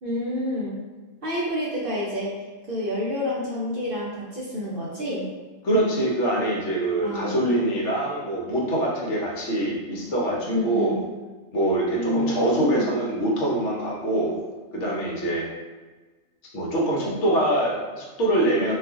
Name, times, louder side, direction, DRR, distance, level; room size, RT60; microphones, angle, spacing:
voice 1, 0.0-0.8 1.2-2.3 2.7-5.2 7.0-7.3 10.5-11.0 11.9-12.9, left 1 dB, 60° right, -5 dB, 0.6 m, -28 dB
voice 2, 5.6-11.0 11.5-14.4 14.7-15.5 16.5-18.8, right 1 dB, 60° left, -3 dB, 1.0 m, -24 dB
2.4 x 2.4 x 3.5 m, 1.3 s
omnidirectional pair, 1.5 m